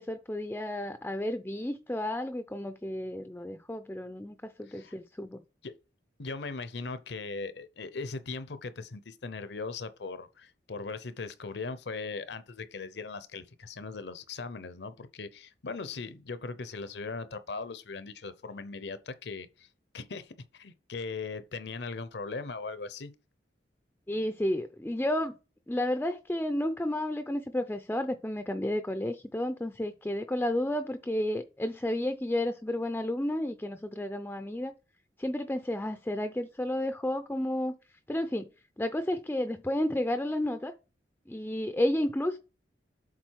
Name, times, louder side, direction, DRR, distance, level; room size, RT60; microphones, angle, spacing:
voice 1, 0.0-5.4 24.1-25.3 25.7-34.7 35.2-37.7 38.1-38.5 38.8-40.7 41.3-42.4, left 1 dB, 10° left, 0.4 m, -31 dB
voice 2, 6.2-19.7 19.9-23.1, left 4 dB, 65° left, 0.7 m, -39 dB
7.5 x 4.0 x 4.6 m
head